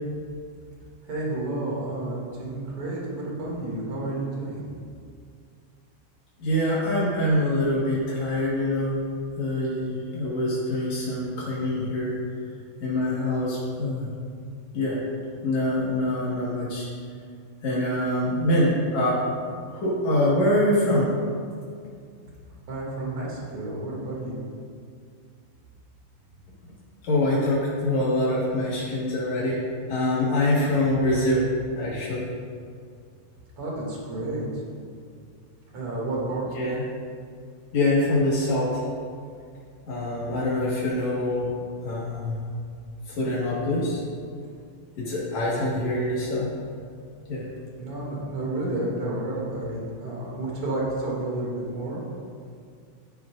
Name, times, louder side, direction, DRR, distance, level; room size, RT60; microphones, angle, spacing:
voice 1, 1.0-4.6 22.7-24.3 33.6-34.6 35.7-36.5 45.5-46.0 47.8-52.0, right 2 dB, 40° right, -4 dB, 2.2 m, -31 dB
voice 2, 6.4-9.0 9.4-12.1 12.8-14.1 14.7-15.0 15.4-16.9 17.6-21.1 27.0-29.6 29.9-31.4 31.7-32.3 36.5-36.8 37.7-38.8 39.9-41.5 41.8-42.4 43.1-44.0 45.0-46.5 47.3-47.4, left 1 dB, 70° left, -7 dB, 1.7 m, -24 dB
16.5 x 10.0 x 2.5 m, 2.2 s
omnidirectional pair, 5.8 m